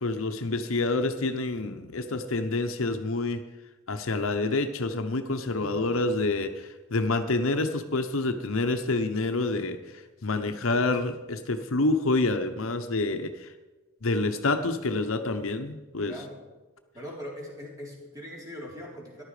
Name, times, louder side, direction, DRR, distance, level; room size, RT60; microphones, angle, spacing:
voice 1, 0.0-3.4 3.9-9.8 10.2-13.5 14.0-16.2, left 2 dB, 70° left, 8 dB, 0.9 m, -27 dB
voice 2, 5.6-6.2 16.0-16.4 16.9-19.2, equal, 15° right, -3 dB, 3.8 m, -41 dB
14.5 x 11.0 x 5.0 m, 1.2 s
head